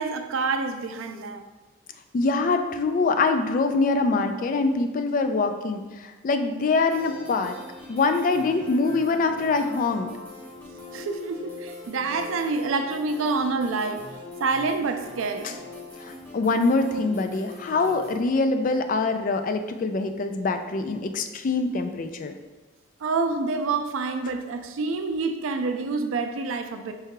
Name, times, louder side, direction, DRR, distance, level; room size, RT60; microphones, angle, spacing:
voice 1, 0.0-1.4 10.9-14.0 14.4-15.6 23.0-26.9, right 4 dB, 85° right, 7 dB, 0.4 m, -27 dB
voice 2, 2.1-7.5 7.9-10.1 15.4-15.5 16.0-22.4, left 3 dB, 40° left, 7 dB, 0.3 m, -24 dB
sound 1, 6.9-18.2, left 3 dB, 10° left, 0.8 m, -42 dB
4.7 x 2.2 x 4.6 m, 1.2 s
head